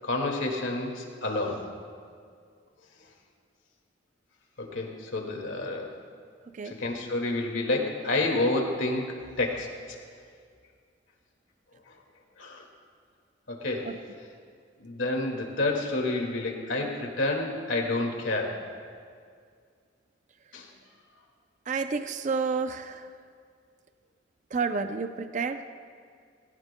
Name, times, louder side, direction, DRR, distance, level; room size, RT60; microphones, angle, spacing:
voice 1, 0.0-1.6 4.6-5.9 6.6-10.0 11.9-12.0 12.4-12.7 13.5-13.9 14.8-18.6 20.5-20.7, left 2 dB, 90° left, 1 dB, 2.1 m, -29 dB
voice 2, 21.7-23.1 24.5-25.6, right 4 dB, 40° right, 9 dB, 0.5 m, -30 dB
18.5 x 17.0 x 2.2 m, 2.1 s
head